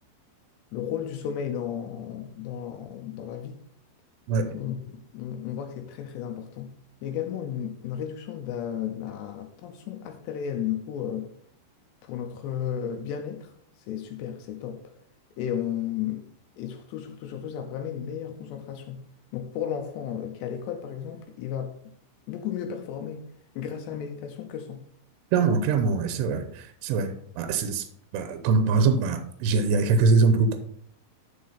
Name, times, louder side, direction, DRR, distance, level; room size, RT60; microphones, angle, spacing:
voice 1, 0.7-3.6 4.5-6.7 7.0-11.3 12.0-13.5 13.9-14.8 15.4-16.2 16.6-19.0 19.3-21.8 22.3-23.3 23.6-24.8, left 9 dB, 80° left, 2.7 m, -33 dB
voice 2, 25.3-27.8 28.1-30.6, right 4 dB, 80° right, 2.5 m, -23 dB
11.5 x 4.1 x 5.6 m
omnidirectional pair, 5.6 m